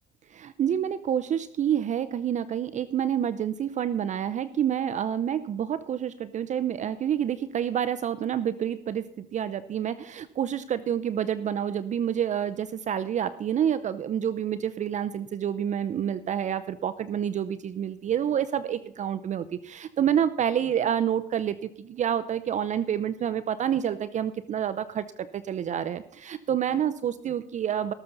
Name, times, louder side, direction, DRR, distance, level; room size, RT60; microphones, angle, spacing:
voice 1, 0.3-27.9, right 9 dB, 45° right, 12 dB, 0.6 m, -28 dB
18.5 x 7.1 x 4.0 m, 0.78 s
cardioid pair, 110°, 17 cm